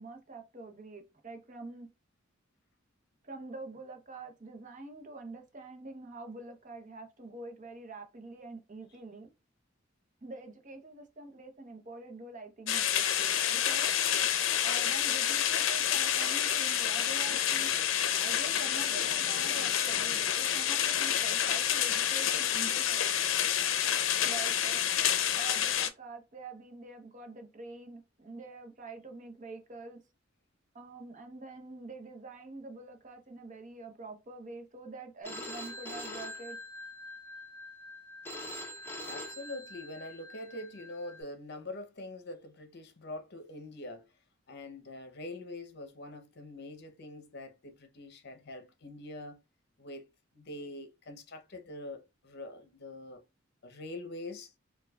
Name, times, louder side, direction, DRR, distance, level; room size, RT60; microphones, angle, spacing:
voice 1, 0.0-1.9 3.2-9.3 10.2-13.8 14.6-17.7 18.2-23.3 24.2-24.9 25.3-30.0 30.7-36.6, right 3 dB, 40° right, 0.8 m, -46 dB
sound 1, 12.7-25.9, left 10 dB, 80° left, 0.5 m, -28 dB
Telephone, 35.3-41.2, left 1 dB, 10° left, 0.7 m, -44 dB
voice 2, 39.1-44.1 44.5-49.4 49.8-50.0 50.3-53.2 53.6-54.5, left 2 dB, 60° left, 0.8 m, -44 dB
4.5 x 2.3 x 2.3 m
head